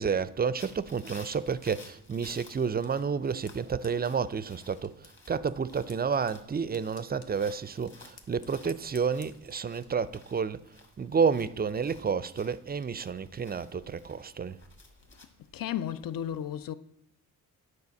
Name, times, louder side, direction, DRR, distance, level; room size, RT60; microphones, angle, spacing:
voice 1, 0.0-10.6 11.0-14.6, right 6 dB, 25° right, 0.4 m, -30 dB
sound 1, 0.6-15.3, left 3 dB, 30° left, 1.7 m, -55 dB
sound 2, 2.8-9.9, left 5 dB, 85° left, 1.2 m, -59 dB
voice 2, 15.5-16.7, left 10 dB, 65° left, 0.6 m, -33 dB
9.6 x 4.7 x 7.0 m
cardioid pair, 85°, 36 cm